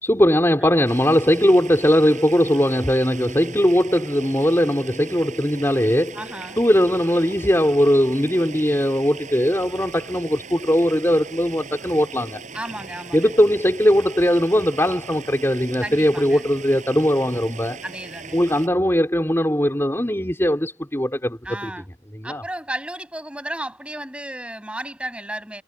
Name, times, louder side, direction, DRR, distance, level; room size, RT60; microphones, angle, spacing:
voice 1, 0.0-6.2 6.6-12.4 13.1-17.8 18.3-21.7 22.1-22.4, equal, 15° left, 3.8 m, -19 dB
voice 2, 0.6-0.9 6.1-6.6 12.5-13.3 15.8-16.4 17.8-18.4 21.4-21.9 22.2-25.6, right 1 dB, 5° right, 7.3 m, -33 dB
sound 1, 0.8-18.7, right 4 dB, 45° right, 6.9 m, -39 dB
head